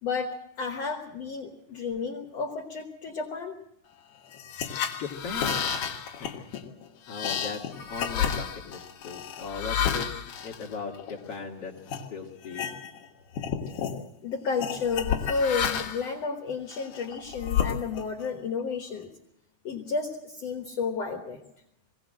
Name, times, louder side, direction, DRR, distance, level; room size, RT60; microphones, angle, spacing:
voice 1, 0.0-3.5 14.2-19.1 19.6-21.4, left 5 dB, 75° left, 3 dB, 1.4 m, -32 dB
sound 1, 4.3-11.4 11.9-12.0 12.4-13.1 13.3-14.0 14.6-16.1 16.7-18.2, left 8 dB, 60° left, 2.5 m, -31 dB
voice 2, 4.9-5.7 6.2-6.5 7.1-7.6 7.9-10.1 10.4-11.7 12.1-12.7, left 5 dB, 45° left, -1 dB, 2.4 m, -38 dB
22.0 x 17.0 x 7.7 m, 0.79 s
omnidirectional pair, 4.8 m